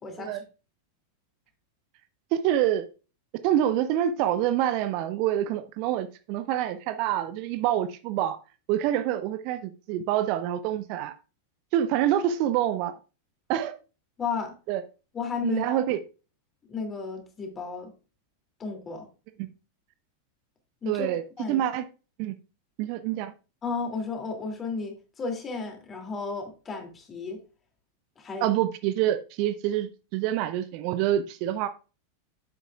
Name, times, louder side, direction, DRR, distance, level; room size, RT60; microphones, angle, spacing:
voice 1, 0.0-0.4 14.2-14.5 15.1-15.8 16.7-17.9 18.6-19.1 20.8-21.6 23.6-27.4 28.2-28.5, left 4 dB, 20° left, 3 dB, 2.7 m, -33 dB
voice 2, 2.3-2.9 3.4-8.4 8.7-11.1 11.7-12.9 13.5-13.7 14.7-14.8 15.4-16.0 19.4-19.5 20.9-21.2 21.5-21.8 22.2-22.3 22.8-23.3 28.4-31.7, right 11 dB, 45° right, 11 dB, 0.6 m, -26 dB
9.9 x 8.0 x 2.4 m, 0.33 s
figure-of-eight pair, 90°, 0 cm